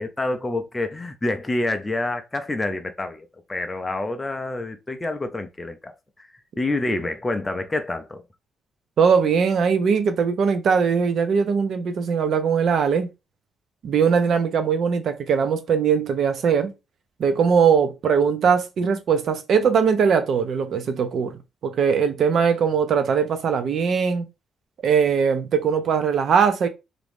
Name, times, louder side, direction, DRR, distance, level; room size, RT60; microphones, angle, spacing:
voice 1, 0.0-6.3 6.6-8.2, left 2 dB, 15° left, 0.4 m, -27 dB
voice 2, 9.0-13.1 13.8-16.7 17.2-24.2 24.8-26.7, right 6 dB, 55° right, 0.4 m, -20 dB
2.9 x 2.5 x 3.3 m
cardioid pair, 150°, 0 cm